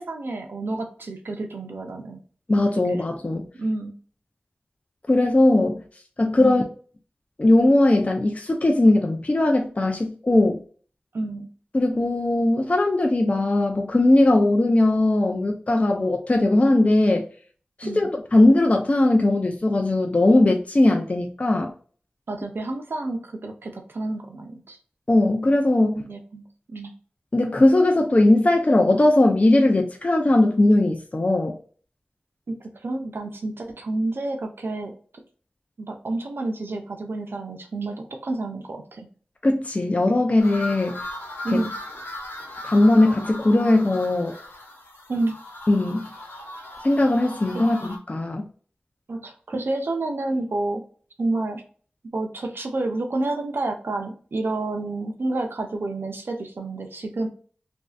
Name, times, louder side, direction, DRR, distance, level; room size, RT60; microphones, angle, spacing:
voice 1, 0.0-2.2 2.9-3.0 3.6-3.9 6.4-6.6 11.1-11.5 17.8-18.1 22.3-24.8 26.1-26.4 26.7-26.9 32.5-32.6 32.8-34.9 35.8-37.9 38.2-39.1 41.4-41.7 45.1-45.3 47.5-47.6 49.1-50.8 51.2-51.6 52.1-57.3, right 2 dB, 80° right, 4 dB, 0.5 m, -29 dB
voice 2, 2.5-3.4 5.1-5.8 6.2-6.6 7.4-10.6 11.7-17.2 17.8-21.7 25.1-26.0 27.3-31.6 39.4-41.0 41.5-41.6 42.6-44.3 45.7-46.1 46.8-48.4, left 2 dB, 40° left, 3 dB, 0.5 m, -19 dB
sound 1, 40.4-48.0, left 1 dB, 80° left, 0.9 m, -38 dB
3.1 x 2.6 x 2.3 m, 0.43 s
wide cardioid pair, 55°, 4 cm